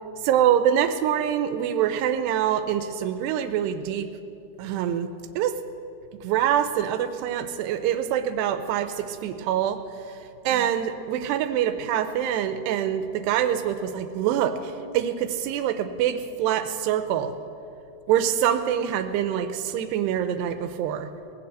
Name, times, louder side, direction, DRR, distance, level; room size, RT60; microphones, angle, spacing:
voice 1, 0.2-4.1 4.6-5.1 5.4-5.5 6.2-9.8 10.5-17.3 18.1-21.1, right 10 dB, 85° right, 9 dB, 2.6 m, -25 dB
19.5 x 6.8 x 7.9 m, 2.7 s
omnidirectional pair, 5.0 m